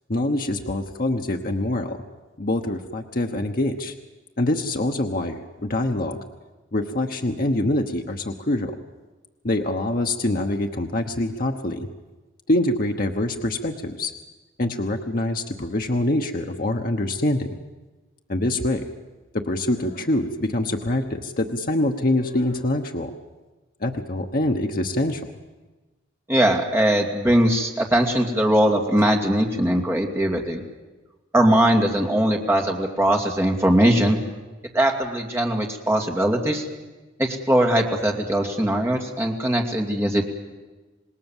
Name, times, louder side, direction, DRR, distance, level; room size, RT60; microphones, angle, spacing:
voice 1, 0.1-2.0 2.4-3.9 4.4-6.2 6.7-8.7 9.4-11.9 12.5-14.1 14.6-17.5 18.3-18.9 19.3-23.1 23.8-25.2, left 1 dB, 45° left, 3 dB, 1.0 m, -25 dB
voice 2, 26.3-30.6 31.3-34.2 34.7-36.7 37.2-40.2, right 1 dB, 15° right, 2 dB, 2.4 m, -20 dB
27.0 x 19.5 x 7.3 m, 1.2 s
head